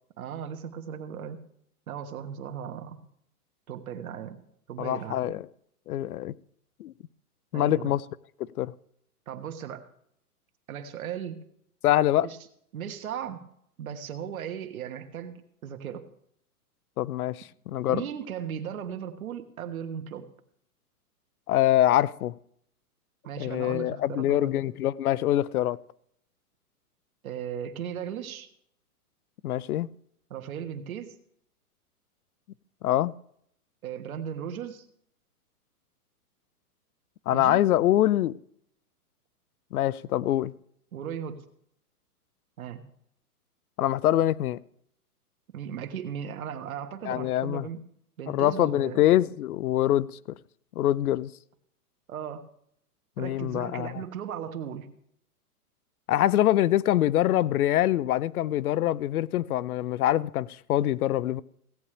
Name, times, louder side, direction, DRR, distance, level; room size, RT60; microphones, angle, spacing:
voice 1, 0.2-1.4 1.9-3.1 3.7-4.4 4.7-5.3 7.5-7.9 9.3-9.8 10.7-11.4 12.2-12.4 12.7-13.4 13.8-16.1 17.9-20.3 23.2-24.7 27.2-28.5 30.3-31.1 33.8-34.8 37.3-37.6 40.9-41.4 42.6-42.8 45.5-47.8 48.2-49.0 52.1-52.5 53.2-54.9, right 8 dB, 65° right, 1.5 m, -37 dB
voice 2, 4.8-5.5 5.9-6.3 6.8-6.9 7.5-8.0 8.4-8.7 11.8-12.3 17.0-18.0 21.5-22.3 23.4-25.8 29.4-29.9 32.8-33.1 37.3-38.4 39.7-40.5 43.8-44.6 47.1-47.7 48.3-50.1 50.8-51.3 53.2-53.9 56.1-61.4, left 13 dB, 70° left, 0.6 m, -24 dB
17.0 x 8.7 x 3.3 m
hypercardioid pair, 160°, 46 cm